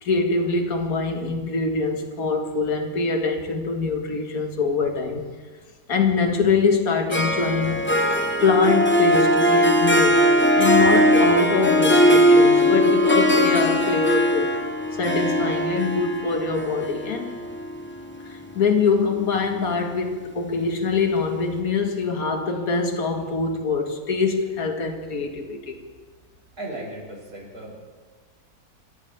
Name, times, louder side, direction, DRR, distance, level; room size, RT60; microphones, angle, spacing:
voice 1, 0.0-5.2 5.9-8.0 8.4-10.2 10.6-14.5 15.0-17.4 18.3-25.8, left 4 dB, 65° left, 4 dB, 2.1 m, -23 dB
Harp, 7.1-18.5, equal, 10° left, 0.8 m, -19 dB
voice 2, 26.6-27.8, right 1 dB, 75° right, -3 dB, 5.5 m, -36 dB
27.5 x 14.0 x 3.5 m, 1.4 s
omnidirectional pair, 1.7 m